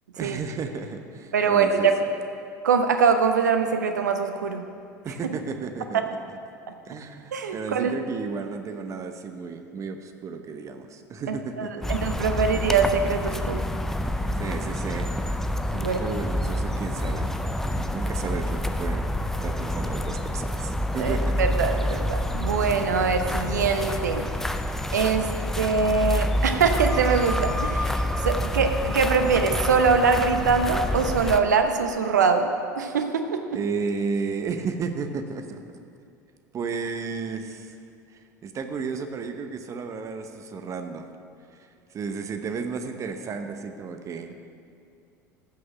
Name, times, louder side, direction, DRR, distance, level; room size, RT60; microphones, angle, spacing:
voice 1, 0.2-1.9 5.0-6.0 6.8-11.9 14.4-15.1 15.7-17.3 17.6-19.1 19.4-21.3 21.8-21.9 33.5-35.8 36.5-37.7 38.4-41.1 41.9-44.3, right 5 dB, 35° right, 7 dB, 1.0 m, -33 dB
voice 2, 1.3-2.0 2.6-4.6 5.9-6.1 7.3-7.9 11.3-13.6 15.7-16.0 21.0-24.3 24.9-25.3 25.5-32.5 32.8-33.4, right 5 dB, 75° right, 7 dB, 0.9 m, -23 dB
sound 1, 11.8-31.4, left 1 dB, 5° left, 0.6 m, -27 dB
14.5 x 6.4 x 6.1 m, 2.4 s
figure-of-eight pair, 70°, 10 cm